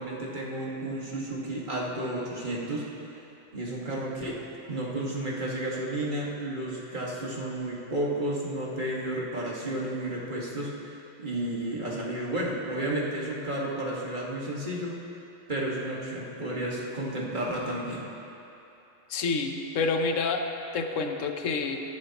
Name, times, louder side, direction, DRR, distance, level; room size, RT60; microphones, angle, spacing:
voice 1, 0.0-2.9 3.5-4.4 4.7-15.0 15.5-18.0, right 1 dB, 40° right, -4 dB, 1.8 m, -32 dB
voice 2, 19.1-20.4 20.7-21.8, left 4 dB, 85° left, 5 dB, 1.2 m, -28 dB
17.5 x 11.5 x 2.9 m, 2.9 s
omnidirectional pair, 1.3 m